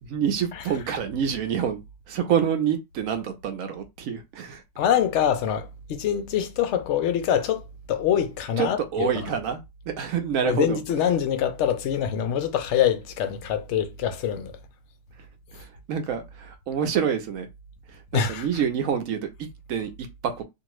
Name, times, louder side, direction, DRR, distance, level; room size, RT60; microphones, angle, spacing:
voice 1, 0.0-4.6 8.6-10.8 15.1-17.5 17.9-20.4, right 8 dB, 70° right, 0.9 m, -27 dB
voice 2, 4.8-9.1 10.4-14.6 15.5-15.6 18.1-18.4, left 9 dB, 70° left, 0.7 m, -24 dB
2.7 x 2.5 x 3.0 m
omnidirectional pair, 1.7 m